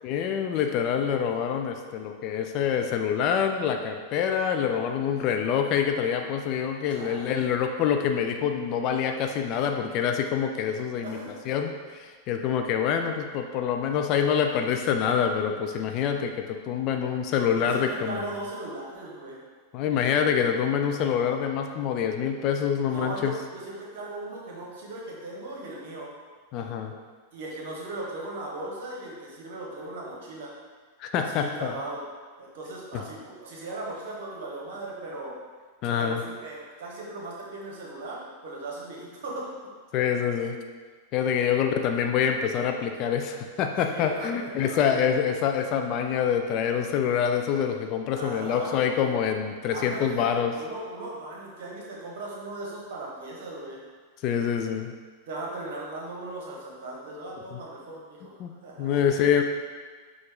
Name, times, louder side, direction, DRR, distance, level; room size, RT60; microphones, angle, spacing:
voice 1, 0.0-11.2 11.5-18.2 19.7-23.3 26.5-26.9 31.0-31.7 32.9-33.0 35.8-36.2 39.9-40.6 41.1-50.5 54.2-54.9 58.4-58.5 58.8-59.4, left 8 dB, 40° left, 4 dB, 0.3 m, -26 dB
voice 2, 6.9-7.3 11.0-11.5 17.6-19.4 22.9-26.1 27.3-30.5 31.1-32.0 32.4-35.3 36.0-39.5 43.8-45.0 45.4-45.5 48.1-49.1 49.7-53.8 55.3-59.1, right 2 dB, 55° right, -3 dB, 1.0 m, -38 dB
5.8 x 2.5 x 3.3 m, 1.5 s
figure-of-eight pair, 90°, 0 cm